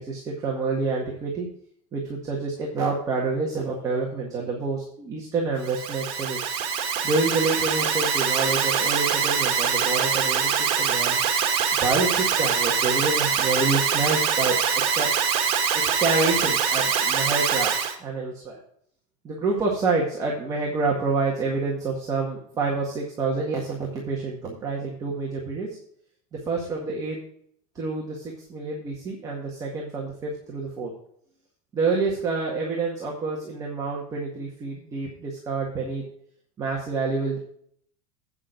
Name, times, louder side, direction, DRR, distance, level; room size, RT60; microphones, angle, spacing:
voice 1, 0.0-1.5 1.9-6.5 7.0-11.2 11.8-14.6 14.9-15.1 15.7-17.7 18.0-18.6 19.2-25.7 26.3-27.2 27.8-30.9 31.7-36.0 36.6-37.4, right 3 dB, 20° right, -2 dB, 1.8 m, -27 dB
Alarm, 5.6-18.0, right 7 dB, 55° right, 2.0 m, -24 dB
8.9 x 7.2 x 5.1 m, 0.65 s
supercardioid pair, 170°, 18 cm